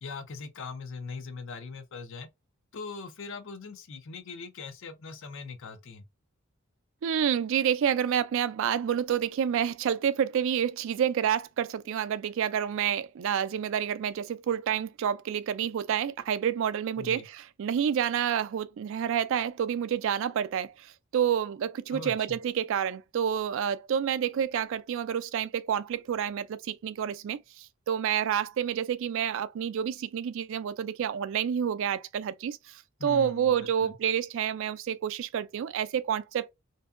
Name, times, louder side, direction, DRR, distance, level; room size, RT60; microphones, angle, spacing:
voice 1, 0.0-2.3 2.7-6.0 17.0-17.2 21.9-22.4 33.0-33.9, left 4 dB, 60° left, 0.5 m, -41 dB
voice 2, 7.0-36.5, right 8 dB, 60° right, 0.3 m, -29 dB
2.6 x 2.2 x 2.3 m
head